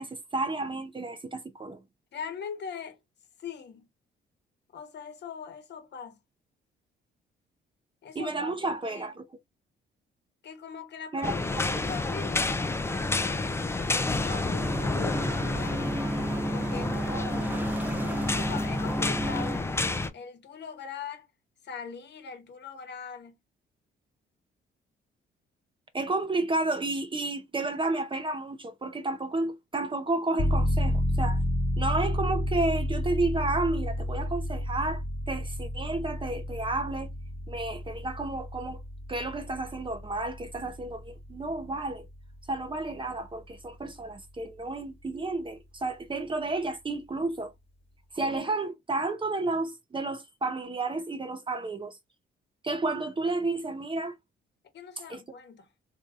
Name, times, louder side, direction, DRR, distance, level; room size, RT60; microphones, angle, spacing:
voice 1, 0.0-1.8 8.1-9.2 11.1-11.8 25.9-31.4 31.8-37.1 37.5-38.8 39.1-42.0 42.5-47.5 48.1-52.0 52.6-54.1 55.1-55.2, right 2 dB, 25° right, 0.7 m, -31 dB
voice 2, 2.1-3.0 3.4-3.9 4.7-6.2 8.0-9.1 10.4-15.9 16.5-17.6 18.3-21.3 21.6-23.4 54.7-55.7, left 6 dB, 60° left, 1.0 m, -41 dB
sound 1, 11.2-20.1, left 3 dB, 15° left, 0.5 m, -30 dB
sound 2, 14.6-19.6, right 1 dB, 10° right, 1.0 m, -32 dB
sound 3, 30.4-42.9 43.3-43.4, left 1 dB, 30° left, 1.4 m, -31 dB
3.4 x 2.8 x 2.5 m
cardioid pair, 90°, 20 cm